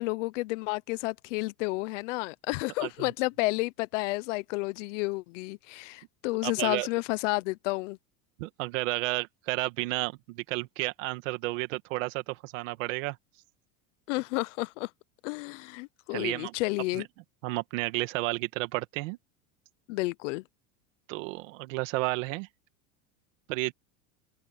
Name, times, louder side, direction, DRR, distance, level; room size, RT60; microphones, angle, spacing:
voice 1, 0.0-8.0 14.1-14.9 15.2-17.1 19.9-20.4, left 23 dB, 60° left, 0.5 m, -31 dB
voice 2, 6.4-6.9 8.4-13.2 16.1-16.5 16.9-17.0 17.4-19.2 21.1-22.5 23.5-23.7, right 21 dB, 65° right, 2.0 m, -32 dB
open air
supercardioid pair, 175°, 42 cm